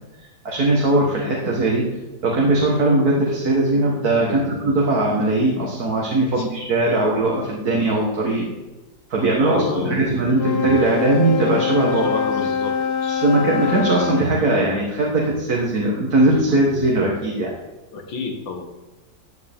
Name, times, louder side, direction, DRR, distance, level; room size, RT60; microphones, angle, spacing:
voice 1, 0.2-1.8 2.2-8.5 9.1-12.2 13.1-17.5, right 2 dB, 55° right, -3 dB, 2.0 m, -20 dB
voice 2, 9.4-10.0 11.9-13.2 17.9-18.7, left 3 dB, 85° left, 3 dB, 2.3 m, -30 dB
Wind instrument woodwind instrument, 10.3-14.3, left 7 dB, 35° left, 1.0 m, -24 dB
15.0 x 9.5 x 3.7 m, 1.1 s
omnidirectional pair, 2.0 m